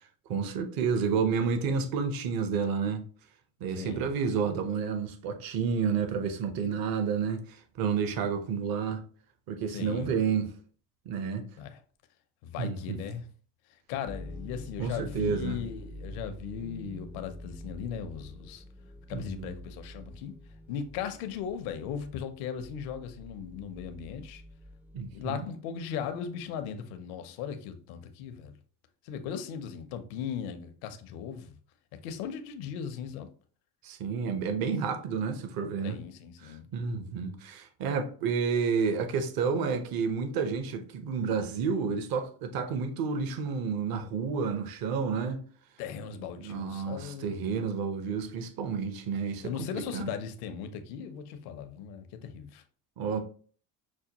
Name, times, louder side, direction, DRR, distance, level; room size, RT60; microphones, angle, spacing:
voice 1, 0.3-3.1 3.6-9.0 9.5-10.5 11.1-11.4 12.6-13.0 14.8-15.6 19.1-19.5 24.9-25.5 33.8-36.0 36.4-45.4 46.2-50.1 53.0-53.2, right 6 dB, 55° right, 0.8 m, -30 dB
voice 2, 3.8-4.1 9.7-10.1 11.6-11.8 12.4-13.3 13.7-18.6 19.1-20.3 20.7-24.4 25.1-28.5 29.0-31.6 32.0-33.3 35.8-36.7 45.8-47.6 49.4-52.6, left 8 dB, 80° left, 0.7 m, -38 dB
sound 1, 14.1-25.3, left 1 dB, 5° right, 0.3 m, -46 dB
6.2 x 2.2 x 2.9 m
supercardioid pair, 95°, 42 cm